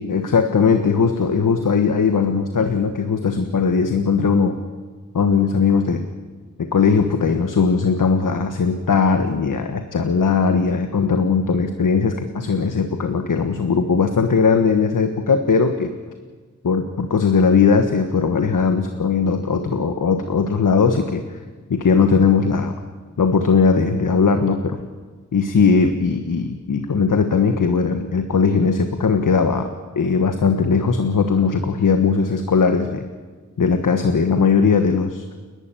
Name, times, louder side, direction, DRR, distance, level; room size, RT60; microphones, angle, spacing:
voice 1, 0.0-4.6 5.1-6.0 6.6-15.9 16.6-21.2 21.7-22.7 23.2-24.9 25.3-29.7 29.9-33.0 33.6-35.2, left 5 dB, 80° left, 7 dB, 1.4 m, -19 dB
30.0 x 11.5 x 9.1 m, 1.4 s
wide cardioid pair, 90°, 32 cm